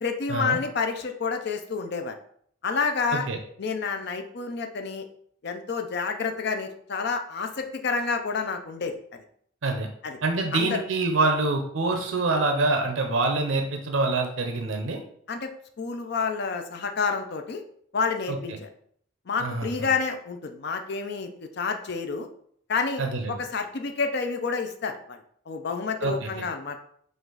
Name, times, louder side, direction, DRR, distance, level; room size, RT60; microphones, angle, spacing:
voice 1, 0.0-2.1 2.6-3.3 3.6-5.0 5.4-9.2 10.0-10.2 10.5-10.8 15.3-15.5 15.8-17.6 17.9-18.7 19.3-22.3 22.7-23.0 23.3-25.2 25.5-26.8, left 5 dB, 55° left, 6 dB, 0.5 m, -29 dB
voice 2, 10.2-15.0 18.3-18.6 19.4-19.9 23.0-23.4 26.0-26.4, right 3 dB, 80° right, 4 dB, 0.6 m, -26 dB
5.1 x 2.5 x 3.8 m, 0.64 s
head